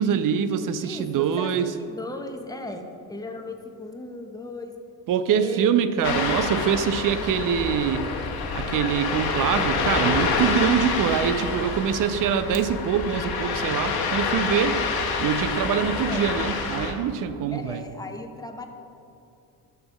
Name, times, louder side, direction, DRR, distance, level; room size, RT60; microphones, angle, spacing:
voice 1, 0.0-1.7 5.1-8.1 8.5-14.8 15.2-17.8, right 8 dB, 40° right, 12 dB, 0.6 m, -24 dB
voice 2, 0.8-4.7 5.4-5.8 16.0-16.3 17.5-18.7, left 2 dB, 10° left, 4 dB, 0.9 m, -37 dB
Ocean, 6.0-16.9, left 4 dB, 50° left, 1.3 m, -27 dB
13.0 x 4.4 x 3.4 m, 2.6 s
hypercardioid pair, 60°, 49 cm